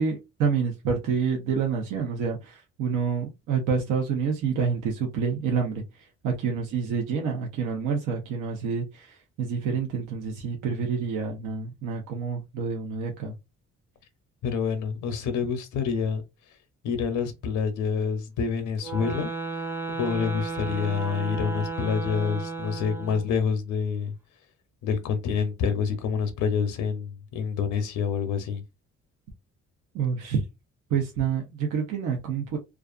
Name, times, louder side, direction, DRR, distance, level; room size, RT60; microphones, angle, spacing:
voice 1, 0.0-13.3 29.9-30.4 30.9-32.6, right 6 dB, 80° right, 0.7 m, -28 dB
voice 2, 14.4-16.2 16.8-19.3 19.9-24.1 24.8-28.6, left 6 dB, 85° left, 0.6 m, -27 dB
sound 1, 18.8-23.3, right 3 dB, 10° right, 0.5 m, -33 dB
2.4 x 2.3 x 2.4 m
cardioid pair, 90°, 30 cm